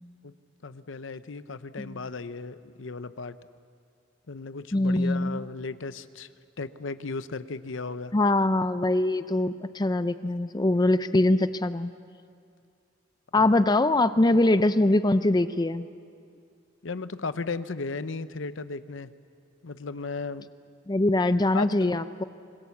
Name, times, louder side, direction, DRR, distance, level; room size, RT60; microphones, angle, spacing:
voice 1, 0.6-3.4 4.3-6.3 6.6-8.1 13.4-13.5 16.8-19.1 19.6-20.5 21.5-22.0, left 4 dB, 80° left, 13 dB, 0.8 m, -35 dB
voice 2, 4.7-5.4 8.1-11.9 13.3-15.9 20.9-22.2, left 2 dB, 20° left, 12 dB, 0.5 m, -23 dB
25.5 x 21.5 x 7.2 m, 2.3 s
head